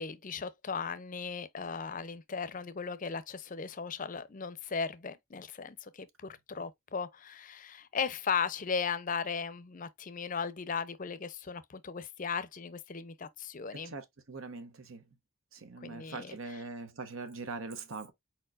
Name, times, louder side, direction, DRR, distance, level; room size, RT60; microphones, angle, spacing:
voice 1, 0.0-13.9 15.8-16.6, left 6 dB, 40° left, 0.5 m, -37 dB
voice 2, 13.7-15.0 15.5-18.1, right 3 dB, 75° right, 0.9 m, -42 dB
4.5 x 4.4 x 2.4 m
head